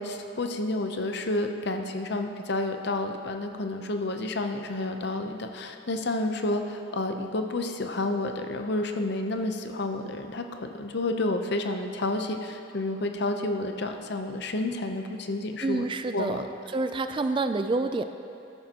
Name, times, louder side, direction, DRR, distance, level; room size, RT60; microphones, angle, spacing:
voice 1, 0.0-15.9 16.1-16.4, left 2 dB, 60° left, 5 dB, 0.7 m, -30 dB
voice 2, 15.6-16.5 16.7-18.0, right 3 dB, 25° right, 9 dB, 0.3 m, -27 dB
13.5 x 13.5 x 2.9 m, 2.6 s
head